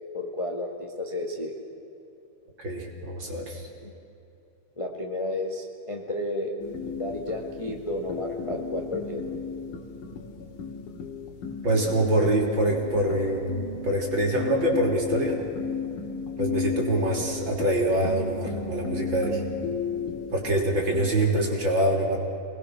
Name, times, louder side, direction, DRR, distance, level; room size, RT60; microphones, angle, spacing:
voice 1, 0.1-1.5 3.8-3.9 4.8-6.5 7.0-9.2, left 1 dB, 20° left, 0 dB, 0.8 m, -32 dB
voice 2, 2.6-3.7 11.6-15.4 16.4-19.4 20.3-22.2, right 1 dB, 35° right, 0 dB, 3.9 m, -25 dB
sound 1, 6.6-21.1, left 5 dB, 75° left, 3.5 m, -34 dB
28.0 x 20.0 x 6.5 m, 2.8 s
omnidirectional pair, 3.7 m